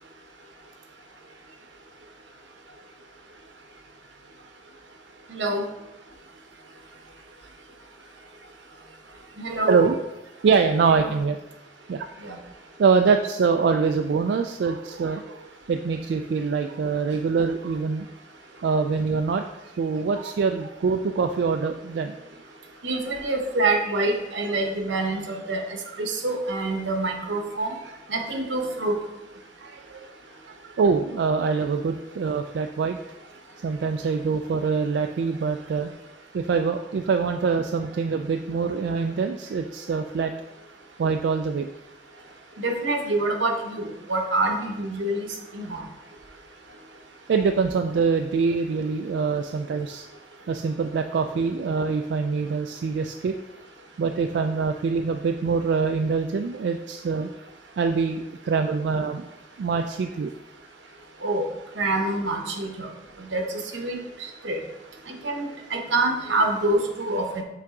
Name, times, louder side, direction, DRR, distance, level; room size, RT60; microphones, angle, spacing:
voice 1, 5.3-5.6 9.4-9.9 11.0-11.1 12.2-12.4 22.8-25.6 26.0-27.7 28.1-29.0 42.6-45.3 45.5-45.8 61.2-61.5 61.8-62.9 63.2-64.6 65.2-67.4, right 2 dB, 90° right, 2 dB, 1.0 m, -26 dB
voice 2, 10.4-11.4 11.9-12.1 12.8-18.1 18.6-19.4 19.8-22.2 28.1-28.2 29.6-30.1 30.6-33.0 33.6-35.9 36.3-40.3 41.0-41.7 47.3-50.1 50.5-53.3 54.0-57.3 57.8-59.3 59.6-60.3, right 5 dB, 70° right, 6 dB, 0.3 m, -24 dB
7.4 x 3.5 x 3.7 m, 0.96 s
head